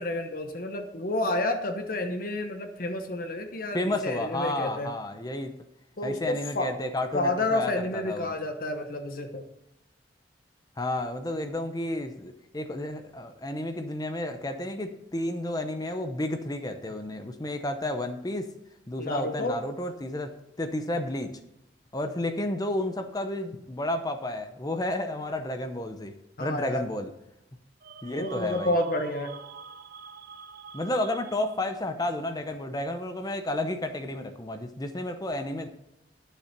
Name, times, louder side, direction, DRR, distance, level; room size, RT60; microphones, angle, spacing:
voice 1, 0.0-4.9 6.0-6.7 7.1-9.4 19.0-19.6 26.4-26.8 28.2-29.3, left 1 dB, 55° left, 6 dB, 1.0 m, -30 dB
voice 2, 3.7-5.6 6.0-8.3 10.8-18.5 18.9-21.4 21.9-26.1 26.4-27.1 28.0-28.7 30.7-35.7, left 1 dB, 20° left, 7 dB, 0.8 m, -31 dB
sound 1, 27.8-32.0, right 6 dB, 55° right, 0.7 m, -45 dB
11.0 x 6.7 x 5.9 m, 0.86 s
head